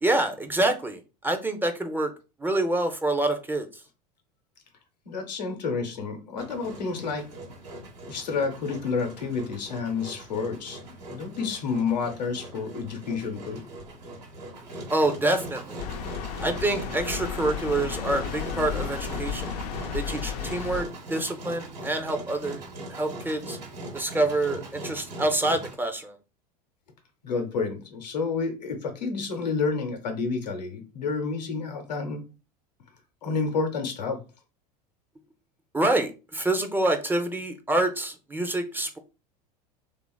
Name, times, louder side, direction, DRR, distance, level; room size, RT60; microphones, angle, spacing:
voice 1, 0.0-2.1 2.4-3.7 14.9-15.8 16.4-19.5 19.9-22.6 22.9-23.6 23.9-26.2 35.7-39.0, right 2 dB, 10° right, 0.4 m, -26 dB
voice 2, 5.0-7.3 8.1-10.8 11.1-13.6 27.2-32.2 33.2-34.2, left 4 dB, 90° left, 0.7 m, -29 dB
Engine, 6.4-25.7, right 1 dB, 85° right, 1.0 m, -40 dB
sound 1, 15.8-20.8, left 7 dB, 65° left, 0.4 m, -33 dB
2.9 x 2.4 x 2.2 m
hypercardioid pair, 85°, 21 cm